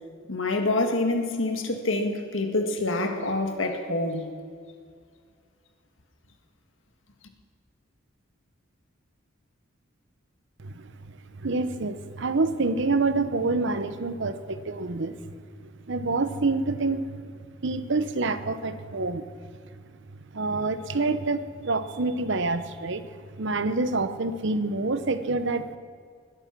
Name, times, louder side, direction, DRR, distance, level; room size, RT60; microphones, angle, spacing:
voice 1, 0.3-4.3, left 2 dB, 70° left, 5 dB, 1.8 m, -26 dB
voice 2, 10.6-15.2 15.6-17.3 17.6-19.2 20.3-23.1 23.4-25.8, right 3 dB, 65° right, 12 dB, 0.9 m, -27 dB
21.0 x 11.5 x 6.0 m, 2.1 s
head